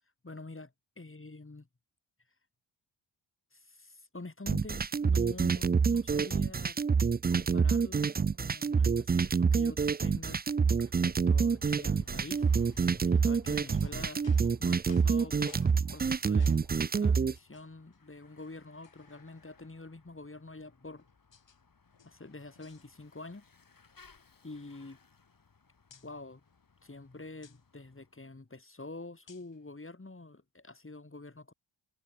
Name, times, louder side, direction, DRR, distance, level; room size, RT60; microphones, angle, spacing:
voice 1, 0.2-1.7 3.5-6.8 7.3-10.4 10.6-12.5 13.0-14.2 14.6-16.6 16.9-21.1 22.0-23.5 24.4-25.0 25.9-26.4 26.8-31.5, left 2 dB, 25° left, 7.9 m, -47 dB
sound 1, 4.5-17.3, right 5 dB, 20° right, 0.5 m, -27 dB
Bicycle / Mechanisms, 10.7-28.2, left 4 dB, 45° left, 5.1 m, -61 dB
sound 2, 13.2-16.8 17.3-18.0 18.4-18.5 18.8-19.9 20.6-21.6 21.9-23.4 23.7-23.9 24.2-25.5 25.9-26.1 27.4-27.6 29.3-29.6, left 7 dB, 65° left, 6.8 m, -60 dB
cardioid pair, 55°, 47 cm